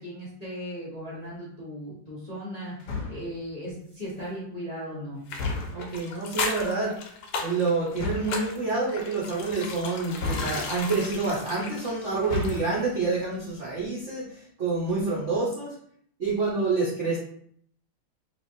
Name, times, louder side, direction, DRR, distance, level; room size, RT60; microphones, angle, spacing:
voice 1, 0.0-2.8 3.1-5.2, equal, 40° left, -7 dB, 0.5 m, -37 dB
sound 1, 2.8-3.4 5.3-6.0 7.9-8.4 10.2-11.0 12.1-12.8, left 3 dB, 70° left, 1.0 m, -32 dB
sound 2, 5.3-12.9 13.1-13.2, left 4 dB, 85° left, 1.5 m, -36 dB
voice 2, 5.7-6.9 7.4-15.7 16.2-17.2, right 3 dB, 70° right, -6 dB, 0.6 m, -27 dB
3.3 x 3.3 x 2.6 m, 0.64 s
omnidirectional pair, 2.3 m